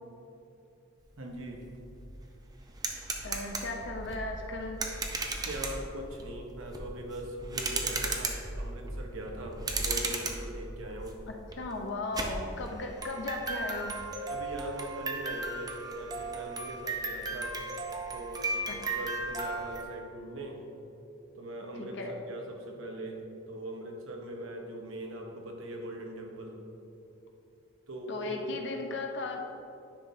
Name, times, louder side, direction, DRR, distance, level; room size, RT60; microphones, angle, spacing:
voice 1, 1.2-1.6 5.4-11.2 14.3-17.6 18.1-20.6 21.4-23.2 23.5-26.6 27.9-28.5, right 1 dB, 75° right, 1 dB, 1.0 m, -41 dB
sound 1, 1.4-1.5 1.8-19.8, right 3 dB, 20° right, 0.5 m, -36 dB
voice 2, 3.2-4.8 11.6-14.0 18.7-18.8 21.8-22.1 28.1-29.4, left 2 dB, 55° left, 2 dB, 0.6 m, -36 dB
10.0 x 5.9 x 2.7 m, 2.7 s
head